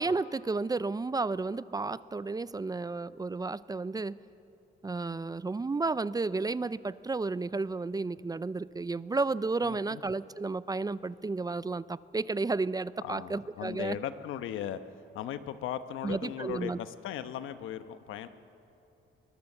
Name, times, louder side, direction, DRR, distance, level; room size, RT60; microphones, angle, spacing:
voice 1, 0.0-4.2 4.8-14.0 16.0-16.8, right 3 dB, 20° right, 17 dB, 0.5 m, -32 dB
voice 2, 9.6-10.0 13.0-14.8 15.1-18.3, left 10 dB, 85° left, 11 dB, 1.1 m, -37 dB
22.5 x 21.0 x 6.8 m, 2.8 s
cardioid pair, 90°, 20 cm